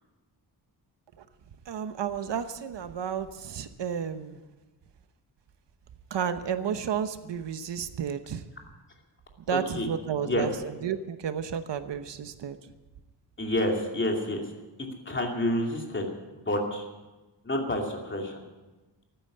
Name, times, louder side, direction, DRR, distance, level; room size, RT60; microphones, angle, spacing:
voice 1, 1.7-4.4 6.1-8.4 9.5-10.5 10.8-12.6, right 8 dB, 85° right, 10 dB, 1.0 m, -32 dB
voice 2, 9.5-10.5 13.4-14.5 15.1-16.1 16.3-16.9 17.4-18.4, left 1 dB, 30° left, 1 dB, 2.6 m, -29 dB
15.0 x 9.1 x 9.5 m, 1.2 s
wide cardioid pair, 155°, 42 cm